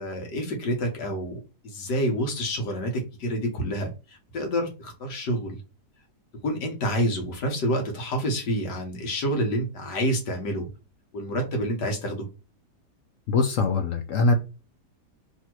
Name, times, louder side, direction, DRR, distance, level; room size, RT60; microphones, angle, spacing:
voice 1, 0.0-1.4 1.6-5.6 6.4-10.7 11.1-12.3, equal, 80° left, 1.8 m, -28 dB
voice 2, 13.3-14.3, left 3 dB, 65° left, 0.9 m, -22 dB
3.5 x 2.7 x 4.5 m
omnidirectional pair, 1.8 m